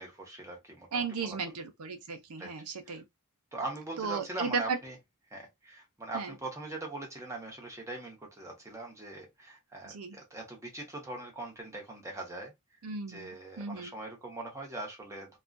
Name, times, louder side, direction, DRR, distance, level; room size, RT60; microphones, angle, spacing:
voice 1, 0.0-1.4 2.4-2.5 2.9-3.0 3.5-5.0 5.3-12.5 13.1-15.4, right 2 dB, 15° right, 0.9 m, -41 dB
voice 2, 0.9-3.0 4.0-4.8 6.1-6.3 9.8-10.2 12.8-13.9, right 5 dB, 85° right, 0.5 m, -35 dB
2.4 x 2.2 x 2.4 m
head